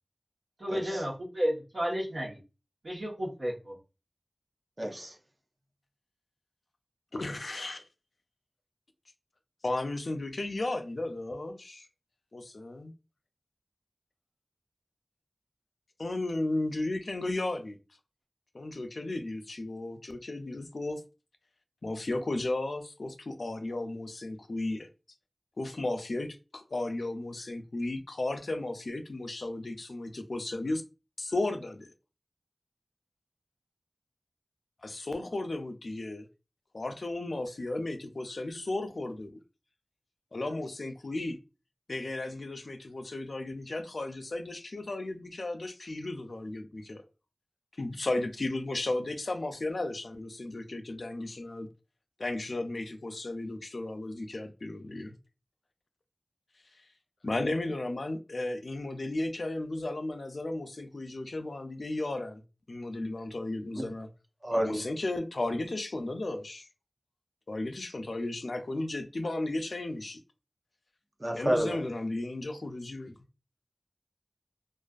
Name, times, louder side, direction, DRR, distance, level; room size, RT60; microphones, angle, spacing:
voice 1, 0.6-2.4 2.8-3.8, equal, 85° right, 1.0 m, -32 dB
voice 2, 4.8-5.1 63.8-63.9 64.4-64.8 71.2-71.8, right 1 dB, 40° right, 0.6 m, -29 dB
voice 3, 7.1-7.8 9.6-11.9 12.3-12.9 16.0-17.8 18.5-21.0 21.8-24.9 25.6-26.3 26.5-30.8 31.2-31.9 34.8-36.3 36.7-39.3 40.3-41.4 41.9-47.0 47.8-51.7 52.2-55.2 57.2-62.4 62.7-64.1 64.6-66.7 67.5-70.2 71.3-73.1, left 2 dB, 85° left, 0.3 m, -34 dB
2.5 x 2.3 x 2.3 m
wide cardioid pair, 45°, 0 cm